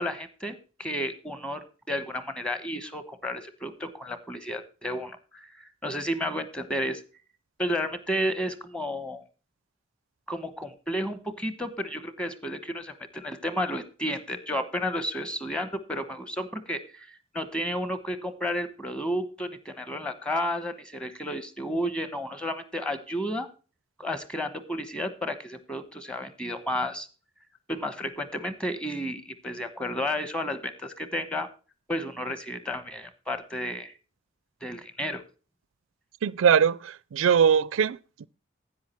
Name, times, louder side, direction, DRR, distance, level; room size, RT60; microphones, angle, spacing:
voice 1, 0.0-7.0 7.6-9.2 10.3-23.5 24.0-27.1 27.7-31.5 31.9-33.9 34.6-35.2, equal, 5° left, 1.0 m, -32 dB
voice 2, 36.2-38.3, right 7 dB, 75° right, 0.4 m, -22 dB
10.5 x 8.8 x 4.3 m
head